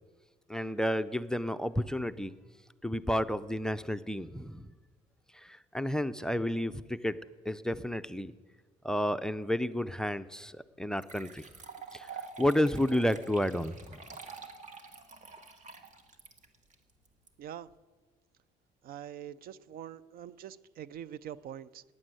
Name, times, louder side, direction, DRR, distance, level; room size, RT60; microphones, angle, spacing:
voice 1, 0.5-2.3 2.8-4.7 5.3-7.2 7.5-8.3 8.8-11.5 11.9-12.1 12.4-14.0, equal, 5° left, 15 dB, 0.5 m, -31 dB
sound 1, 10.3-10.4 11.0-17.3, right 5 dB, 45° right, 1.7 m, -47 dB
voice 2, 18.8-21.8, right 10 dB, 60° right, 18 dB, 0.5 m, -44 dB
12.5 x 9.7 x 9.2 m, 1.4 s
cardioid pair, 110°, 17 cm